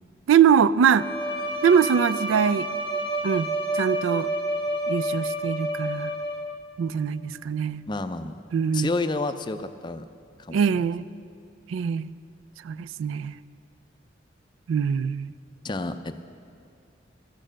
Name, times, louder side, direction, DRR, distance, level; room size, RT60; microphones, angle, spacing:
voice 1, 0.3-1.1 1.6-2.7 3.2-4.3 4.9-6.1 6.8-7.8 8.5-8.9 10.5-11.1 11.7-12.1 12.6-13.3 14.7-15.3, right 7 dB, 90° right, 18 dB, 0.3 m, -22 dB
Bowed string instrument, 0.9-6.7, right 1 dB, 30° right, 1.4 m, -29 dB
voice 2, 7.9-8.4 8.7-10.1 10.4-10.6 15.6-16.2, left 2 dB, 25° left, 9 dB, 0.4 m, -30 dB
13.0 x 8.9 x 6.2 m, 2.5 s
head